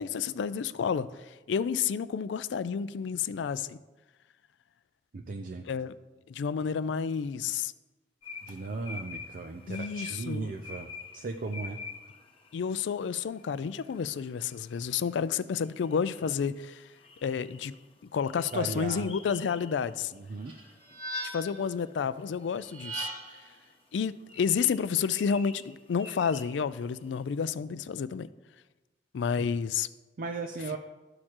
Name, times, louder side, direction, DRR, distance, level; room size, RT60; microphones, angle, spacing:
voice 1, 0.0-3.8 5.7-5.9 6.3-7.7 9.7-10.5 12.5-16.9 17.2-17.8 18.0-20.1 21.2-23.1 23.9-28.3 29.1-29.9, left 6 dB, 85° left, 16 dB, 0.4 m, -30 dB
voice 2, 5.1-5.7 8.4-11.8 18.5-19.1 20.1-20.5 29.4-29.5 30.2-30.8, right 3 dB, 50° right, 5 dB, 0.5 m, -37 dB
sound 1, 8.2-27.2, left 4 dB, 35° left, 0.9 m, -49 dB
sound 2, 20.5-21.7 22.6-23.5, right 1 dB, 65° right, 1.9 m, -38 dB
13.0 x 6.5 x 3.0 m, 1.2 s
head